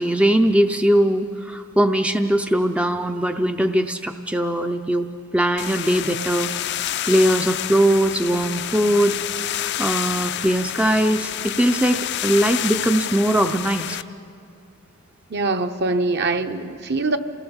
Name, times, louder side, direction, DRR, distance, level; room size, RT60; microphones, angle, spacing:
voice 1, 0.0-5.1 5.3-6.5 7.1-9.2 9.8-14.0, right 1 dB, 5° right, 6 dB, 0.5 m, -20 dB
sound 1, 5.6-14.0, left 11 dB, 55° left, 0.5 m, -28 dB
voice 2, 15.3-17.2, right 3 dB, 50° right, 7 dB, 0.9 m, -23 dB
28.0 x 18.0 x 7.1 m, 2.5 s
head